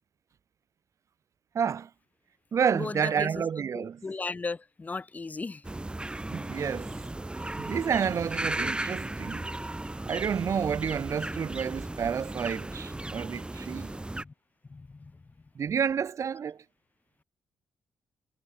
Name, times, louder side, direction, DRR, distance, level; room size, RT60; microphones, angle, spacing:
voice 1, 1.5-1.9 2.5-4.0 6.3-6.9 7.6-9.5 10.1-13.9 15.6-16.6, right 7 dB, 50° right, 0.6 m, -30 dB
voice 2, 2.7-3.5 3.7-5.6 14.2-14.3 14.7-15.1, left 3 dB, 25° left, 0.4 m, -36 dB
sound 1, 5.6-14.2, right 2 dB, 15° right, 1.6 m, -36 dB
supercardioid pair, 60°, 7 cm